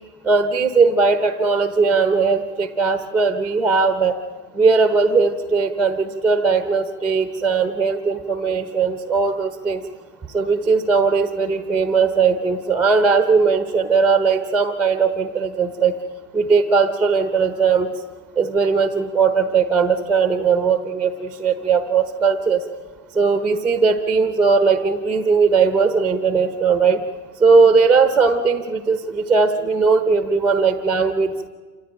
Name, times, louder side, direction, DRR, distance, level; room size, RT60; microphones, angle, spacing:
voice 1, 0.2-4.2 4.5-9.8 10.3-15.9 16.3-17.9 18.4-22.6 23.1-27.0 27.4-31.5, right 5 dB, 5° right, 9 dB, 0.8 m, -18 dB
27.0 x 16.0 x 8.9 m, 1.5 s
supercardioid pair, 155°, 39 cm